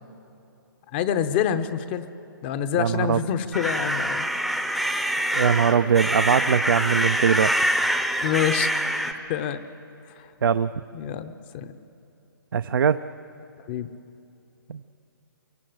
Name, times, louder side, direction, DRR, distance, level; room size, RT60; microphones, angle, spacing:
voice 1, 0.9-2.1 2.4-4.3 8.2-8.7 9.3-9.6 10.2-10.3 10.9-11.7 13.7-13.9, left 9 dB, 30° left, 11 dB, 0.9 m, -26 dB
voice 2, 2.8-3.2 5.3-7.7 10.4-10.7 12.5-13.0 14.7-14.8, right 7 dB, 70° right, 9 dB, 0.7 m, -21 dB
sound 1, 3.5-9.1, equal, ahead, 0.8 m, -25 dB
23.5 x 23.0 x 8.0 m, 2.8 s
hypercardioid pair, 155°, 12 cm